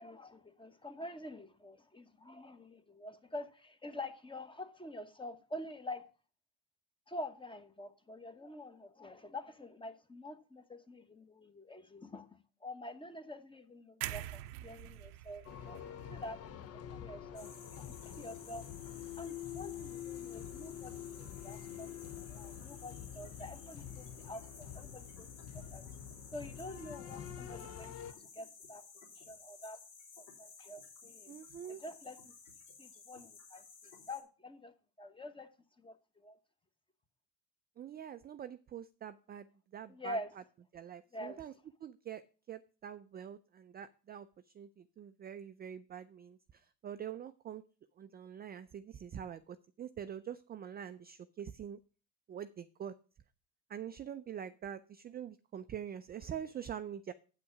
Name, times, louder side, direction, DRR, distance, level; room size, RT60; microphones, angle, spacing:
voice 1, 0.0-6.0 7.1-12.3 12.6-16.4 16.9-17.5 17.8-21.9 22.1-25.3 25.5-25.8 26.3-28.8 29.2-29.8 30.2-31.3 31.8-32.3 32.8-35.5 35.8-36.4 39.9-40.3 41.1-41.4, left 1 dB, 10° left, 1.2 m, -47 dB
sound 1, 14.0-18.0 18.4-18.6, right 15 dB, 85° right, 0.7 m, -46 dB
sound 2, 15.5-28.1, left 10 dB, 35° left, 0.6 m, -46 dB
sound 3, 17.3-34.2, left 5 dB, 75° left, 3.6 m, -55 dB
voice 2, 31.3-31.8 37.8-40.2 40.7-41.5 41.8-42.2 42.5-47.6 48.0-51.8 52.3-53.0 53.7-57.1, right 9 dB, 25° right, 0.4 m, -45 dB
8.2 x 6.1 x 5.9 m
supercardioid pair, 80°, 43 cm